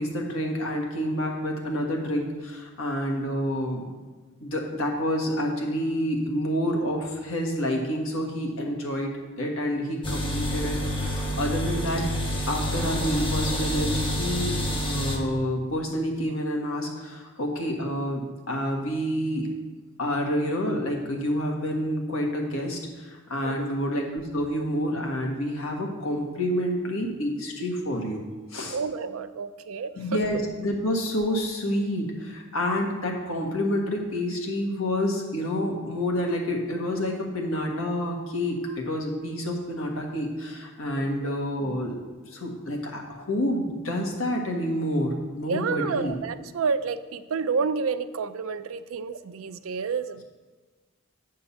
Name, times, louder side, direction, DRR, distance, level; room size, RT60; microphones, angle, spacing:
voice 1, 0.0-3.9 4.4-9.1 9.4-12.1 12.5-19.5 20.0-28.2 28.5-28.8 30.0-41.9 42.3-46.1, equal, 80° left, 1 dB, 1.6 m, -28 dB
sound 1, 10.0-15.2, equal, 25° left, 1.2 m, -28 dB
voice 2, 28.7-30.2 41.0-41.3 45.4-50.2, right 5 dB, 80° right, 12 dB, 0.5 m, -30 dB
9.7 x 3.7 x 7.1 m, 1.4 s
head